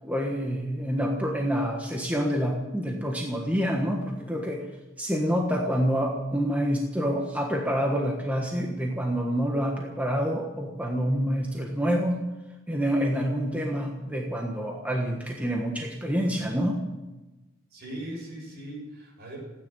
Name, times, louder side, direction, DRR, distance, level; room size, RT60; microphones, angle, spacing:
voice 1, 0.0-4.6 5.0-12.2 12.7-16.8, equal, 5° right, 0 dB, 1.4 m, -27 dB
voice 2, 17.7-19.4, right 1 dB, 55° right, -1 dB, 7.3 m, -39 dB
16.0 x 9.8 x 9.2 m, 1.1 s
head